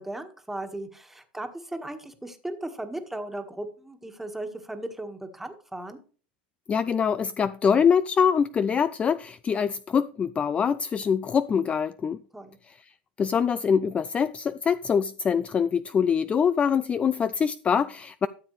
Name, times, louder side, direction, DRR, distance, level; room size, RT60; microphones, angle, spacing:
voice 1, 0.0-6.0 12.3-12.6, right 1 dB, 5° right, 1.6 m, -37 dB
voice 2, 6.7-12.2 12.7-12.8 13.2-18.3, left 7 dB, 25° left, 0.4 m, -24 dB
13.0 x 7.1 x 3.2 m
hypercardioid pair, 95°, 5 cm